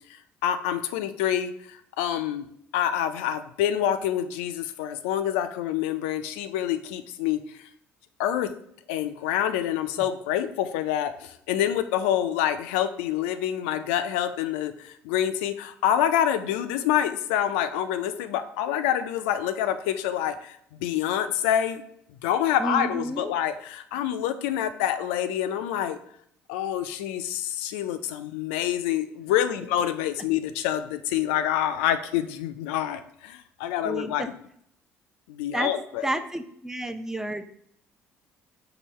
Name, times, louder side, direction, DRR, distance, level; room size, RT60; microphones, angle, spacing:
voice 1, 0.4-2.5 2.7-7.4 8.2-8.5 8.9-21.8 22.2-26.0 26.5-34.3 35.3-36.1, left 10 dB, 80° left, 10 dB, 0.4 m, -27 dB
voice 2, 22.6-23.3 33.8-34.3 35.5-35.7 36.0-37.4, right 1 dB, 10° right, 9 dB, 0.5 m, -30 dB
4.8 x 2.6 x 4.1 m, 0.69 s
hypercardioid pair, 55°, 6 cm